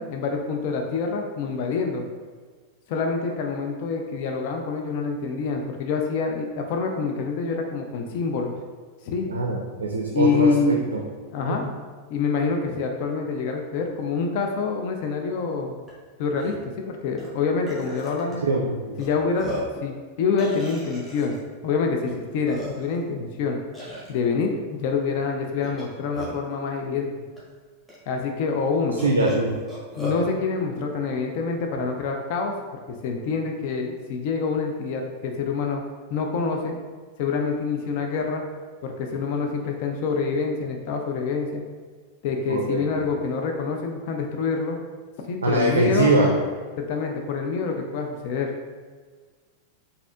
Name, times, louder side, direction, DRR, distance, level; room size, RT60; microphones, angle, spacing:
voice 1, 0.0-2.0 2.9-8.5 9.0-9.3 10.1-10.8 11.3-11.7 12.1-15.8 16.2-18.4 19.0-19.5 19.8-21.4 21.6-23.6 24.1-27.1 28.1-29.0 30.0-32.5 32.9-35.8 36.1-36.8 37.2-38.4 38.8-41.6 42.2-44.8 45.3-46.1 46.8-48.5, left 5 dB, 50° left, 3 dB, 0.3 m, -26 dB
voice 2, 9.2-10.5 10.9-11.0 11.5-11.6 18.4-18.9 29.0-29.5 42.5-43.0 45.4-46.3, right 2 dB, 70° right, 0 dB, 0.4 m, -22 dB
Burping eructation, 15.9-16.0 16.3-16.5 17.2-17.3 17.7-18.3 19.0-19.1 19.4-19.8 20.4-21.4 22.1-22.2 22.5-23.0 23.7-24.1 25.6-26.5 27.4-27.5 27.9-28.0 29.0-30.2, equal, 5° left, 1.3 m, -35 dB
4.1 x 2.6 x 2.2 m, 1.5 s
figure-of-eight pair, 90°, 0 cm